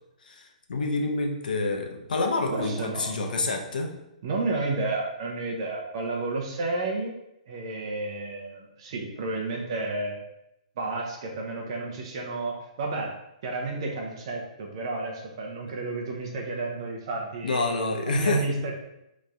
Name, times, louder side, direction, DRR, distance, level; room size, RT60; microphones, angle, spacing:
voice 1, 0.2-3.9 17.4-18.4, left 3 dB, 85° left, 3 dB, 0.6 m, -28 dB
voice 2, 2.5-3.1 4.2-7.2 7.5-10.2 10.8-13.1 13.4-17.6 18.1-18.7, right 3 dB, 40° right, 0 dB, 0.7 m, -31 dB
3.1 x 2.6 x 3.4 m, 0.86 s
hypercardioid pair, 170°, 4 cm